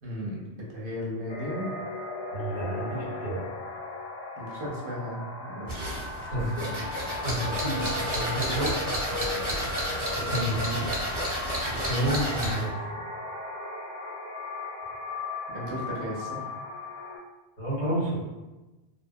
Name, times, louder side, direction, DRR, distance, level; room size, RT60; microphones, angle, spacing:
voice 1, 0.0-1.7 4.4-5.9 6.4-6.8 10.6-10.9 15.5-16.5, equal, 60° right, -3 dB, 0.7 m, -35 dB
sound 1, 1.3-17.2, left 2 dB, 65° left, 0.8 m, -37 dB
voice 2, 2.3-3.5 6.3-6.6 7.2-7.8 8.1-8.7 10.3-10.6 11.8-12.7 17.6-18.2, right 1 dB, 85° left, -9 dB, 1.6 m, -29 dB
sound 2, 5.7-12.7, equal, 30° right, 0.9 m, -31 dB
2.7 x 2.1 x 2.5 m, 1.1 s
omnidirectional pair, 1.1 m